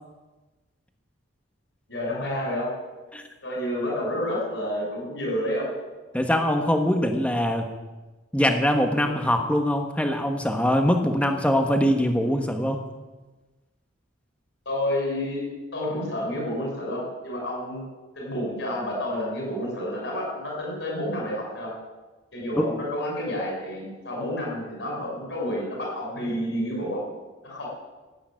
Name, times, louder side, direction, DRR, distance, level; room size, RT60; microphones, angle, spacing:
voice 1, 1.9-2.7 3.4-5.7 14.6-17.8 18.2-21.7 22.3-27.1 27.4-27.7, left 1 dB, 65° left, -1 dB, 6.2 m, -29 dB
voice 2, 6.1-7.7 8.3-12.8 22.6-22.7, equal, 5° left, 4 dB, 1.4 m, -23 dB
15.0 x 9.1 x 9.0 m, 1.2 s
head